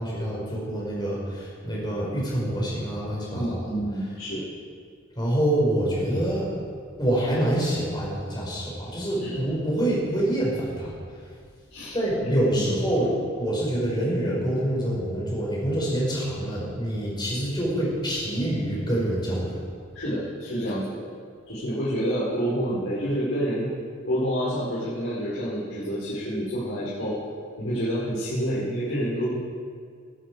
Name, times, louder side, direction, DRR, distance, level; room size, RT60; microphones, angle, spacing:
voice 1, 0.0-3.6 5.2-6.5 7.0-10.9 11.9-19.6, right 1 dB, 20° left, -5 dB, 5.1 m, -26 dB
voice 2, 3.3-4.4 9.2-9.3 11.7-12.0 12.5-12.7 19.9-21.0 21.5-23.7 24.0-27.2 27.6-29.4, equal, 80° left, -11 dB, 4.8 m, -28 dB
21.0 x 11.0 x 4.9 m, 2.1 s
head